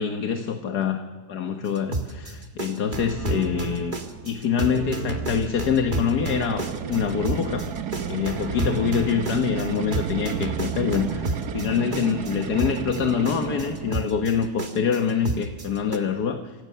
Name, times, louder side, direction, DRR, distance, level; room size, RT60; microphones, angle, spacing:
voice 1, 0.0-3.9 4.2-7.8 8.1-16.5, left 7 dB, 75° left, 6 dB, 1.8 m, -25 dB
sound 1, 1.7-16.0, right 2 dB, 30° right, 2.0 m, -30 dB
sound 2, 6.1-14.1, right 8 dB, 70° right, 1.7 m, -32 dB
28.5 x 24.5 x 6.8 m, 1.4 s
omnidirectional pair, 1.7 m